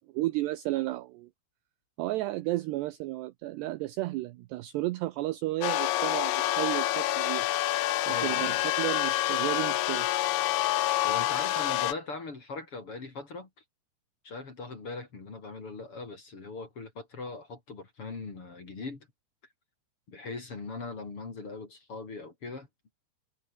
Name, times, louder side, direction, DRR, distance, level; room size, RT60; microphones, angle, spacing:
voice 1, 0.1-1.3 2.0-7.5 8.1-10.1, right 17 dB, 80° right, 2.5 m, -33 dB
sound 1, 5.6-11.9, left 15 dB, 75° left, 3.4 m, -27 dB
voice 2, 8.1-8.6 11.0-13.5 14.2-19.1 20.1-22.7, left 3 dB, 30° left, 3.9 m, -40 dB
omnidirectional pair, 5.7 m